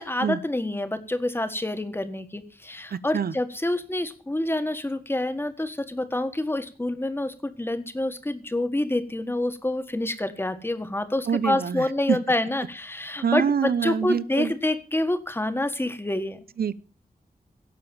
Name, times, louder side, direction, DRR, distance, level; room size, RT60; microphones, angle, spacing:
voice 1, 0.0-16.4, left 1 dB, 15° left, 9 dB, 1.6 m, -27 dB
voice 2, 2.9-3.3 11.3-12.2 13.2-14.5 16.6-16.7, right 7 dB, 80° right, 17 dB, 0.9 m, -25 dB
17.0 x 7.0 x 7.1 m, 0.38 s
wide cardioid pair, 130°, 15 cm